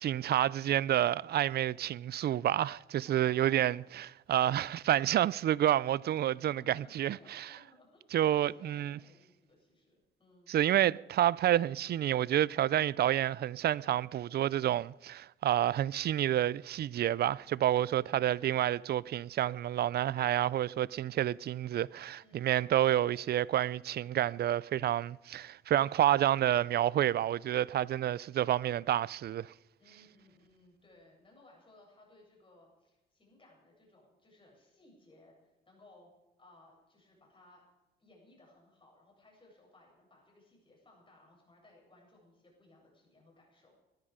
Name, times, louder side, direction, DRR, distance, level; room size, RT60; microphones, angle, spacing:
voice 1, 0.0-7.5 8.1-9.0 10.5-29.5, right 12 dB, 55° right, 0.4 m, -29 dB
voice 2, 3.0-3.9 6.4-10.6 17.7-18.4 22.2-22.8 29.8-36.1 36.4-37.6 38.0-43.7, left 2 dB, 25° left, 7.9 m, -61 dB
20.0 x 13.0 x 5.0 m
cardioid pair, 90°, 20 cm